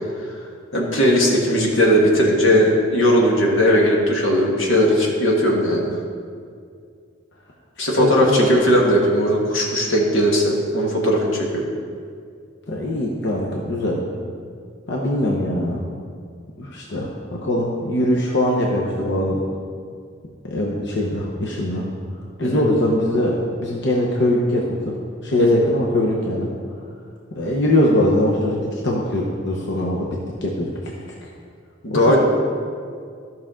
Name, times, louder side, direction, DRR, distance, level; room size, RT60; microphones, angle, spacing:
voice 1, 0.7-5.9 7.8-11.6 22.4-22.6 25.4-25.5 31.8-32.2, equal, 85° left, -1 dB, 1.6 m, -18 dB
voice 2, 7.8-8.5 12.7-14.0 14.9-15.8 16.6-19.4 20.5-21.8 22.4-24.9 25.2-26.5 27.4-30.1 30.4-30.7 31.9-32.2, left 1 dB, 60° left, -3 dB, 1.0 m, -21 dB
13.5 x 6.0 x 3.8 m, 2.2 s
head